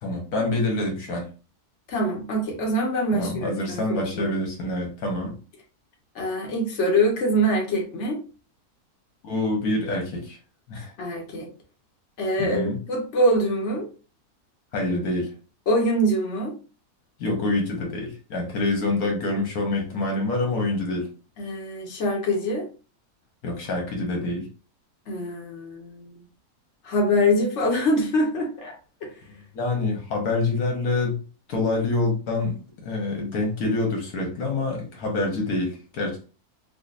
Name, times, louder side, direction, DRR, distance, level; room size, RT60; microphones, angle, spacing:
voice 1, 0.0-1.3 3.1-5.3 9.2-10.4 10.7-10.9 12.4-12.8 14.7-15.3 17.2-21.1 23.4-24.5 29.5-31.2 31.5-32.6 32.8-36.3, left 2 dB, 75° left, 1.4 m, -26 dB
voice 2, 1.9-4.4 5.2-5.3 6.1-8.2 11.0-11.5 12.2-13.9 15.7-16.5 21.4-22.7 25.1-26.1 26.8-28.7, equal, 55° left, 1.2 m, -24 dB
5.0 x 2.3 x 2.5 m
omnidirectional pair, 1.6 m